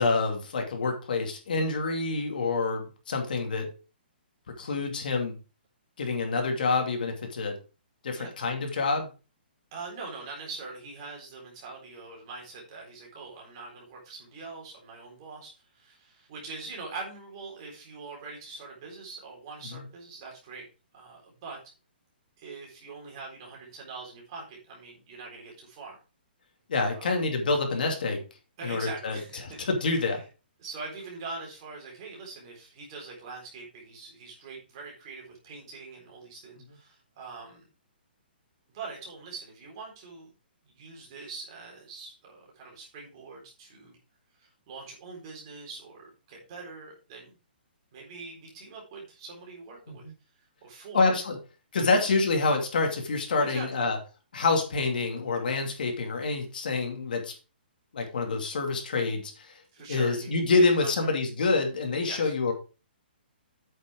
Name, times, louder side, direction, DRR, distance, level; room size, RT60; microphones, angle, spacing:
voice 1, 0.0-3.7 4.5-5.4 6.0-7.6 8.0-9.1 19.6-19.8 26.7-28.2 28.6-30.2 49.9-50.1 50.9-51.4 51.7-54.0 54.3-57.3 57.9-59.6 59.9-62.5, left 3 dB, 55° left, 3 dB, 2.7 m, -27 dB
voice 2, 9.7-20.7 20.9-21.6 22.4-26.0 26.9-27.2 28.6-29.6 30.0-30.2 30.6-37.6 38.7-40.3 40.7-44.0 44.4-47.4 47.9-50.0 50.6-51.1 51.9-52.1 53.4-53.9 59.7-60.4 60.8-60.9 62.0-62.3, right 4 dB, 25° right, -1 dB, 4.0 m, -43 dB
8.8 x 6.7 x 4.6 m, 0.32 s
hypercardioid pair, 180°, 6 cm